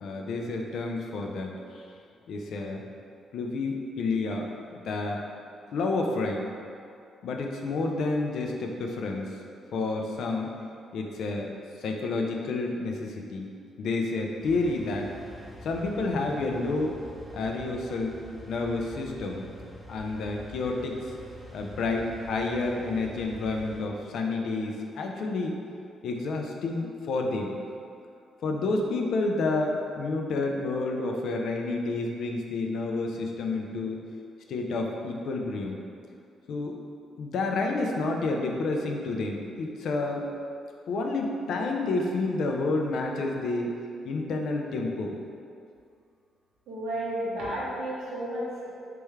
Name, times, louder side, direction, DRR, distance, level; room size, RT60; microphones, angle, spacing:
voice 1, 0.0-1.8 2.3-2.8 3.3-5.2 5.7-6.5 7.2-9.4 9.7-10.5 10.9-11.5 11.8-13.5 13.8-15.1 15.6-17.0 17.3-18.2 18.5-19.5 19.9-21.0 21.5-25.6 26.0-27.6 28.4-34.0 34.5-35.8 36.5-36.8 37.2-40.2 40.9-43.7 44.0-45.2, left 3 dB, 70° left, 1 dB, 0.4 m, -29 dB
sound 1, 14.4-23.8, equal, 20° left, 0.7 m, -46 dB
voice 2, 46.7-48.6, right 1 dB, 90° right, -7 dB, 1.1 m, -32 dB
3.4 x 3.4 x 3.2 m, 2.5 s
cardioid pair, 90°, 0 cm